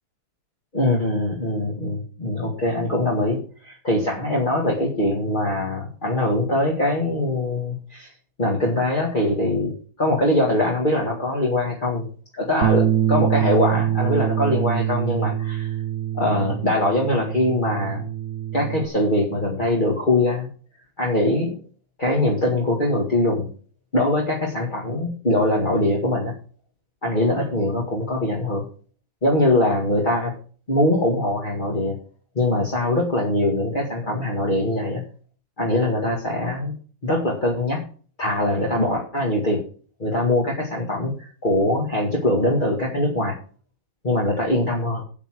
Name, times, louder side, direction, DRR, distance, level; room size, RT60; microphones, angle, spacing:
voice 1, 0.7-8.1 8.4-9.7 10.0-12.1 12.3-15.7 16.1-18.1 18.5-20.5 21.0-21.6 22.0-23.5 23.9-26.3 27.0-28.7 29.2-30.3 30.7-32.0 32.4-35.0 35.6-36.8 37.0-37.8 38.2-39.6 40.0-43.4 44.0-45.0, left 1 dB, 30° left, -2 dB, 2.1 m, -22 dB
Bass guitar, 12.6-18.9, right 11 dB, 60° right, 0.9 m, -24 dB
8.5 x 8.5 x 6.2 m, 0.41 s
omnidirectional pair, 1.7 m